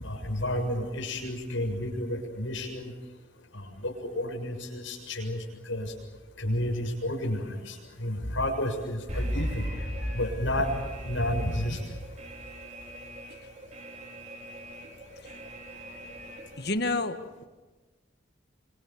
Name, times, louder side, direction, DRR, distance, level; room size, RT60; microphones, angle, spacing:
voice 1, 0.0-2.9 3.5-5.9 6.4-9.7 10.1-10.7 11.0-11.8, left 1 dB, 75° left, 2 dB, 7.1 m, -31 dB
Alarm, 9.1-16.8, equal, 35° right, 3.4 m, -37 dB
voice 2, 9.5-10.2 15.2-15.4 15.7-16.0 16.3-17.4, left 2 dB, 55° left, 9 dB, 1.7 m, -33 dB
27.5 x 25.5 x 7.4 m, 1.2 s
head